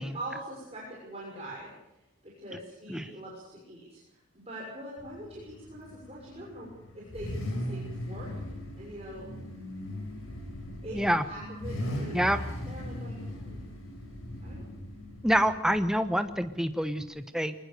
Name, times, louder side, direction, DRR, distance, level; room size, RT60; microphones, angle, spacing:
voice 1, 0.0-1.7 2.2-4.0 4.3-6.7 6.9-8.3 8.8-9.3 10.8-12.4 12.7-13.6 14.4-14.6, right 1 dB, 30° right, -5 dB, 6.2 m, -43 dB
Car / Idling / Accelerating revving vroom, 5.0-17.1, left 1 dB, 75° left, 6.2 m, -39 dB
voice 2, 15.2-17.5, equal, 5° right, 9 dB, 1.1 m, -27 dB
22.5 x 20.0 x 6.8 m, 0.89 s
head